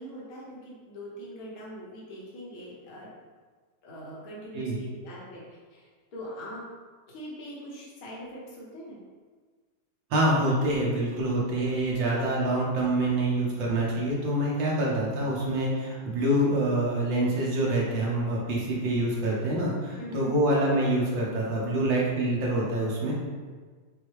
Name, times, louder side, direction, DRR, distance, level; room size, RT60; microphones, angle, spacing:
voice 1, 0.0-3.1 3.8-6.6 7.1-9.0 20.0-20.4, equal, 50° left, -5 dB, 1.3 m, -42 dB
voice 2, 10.1-23.1, right 1 dB, 65° right, -4 dB, 1.6 m, -26 dB
6.5 x 2.2 x 3.1 m, 1.4 s
omnidirectional pair, 2.3 m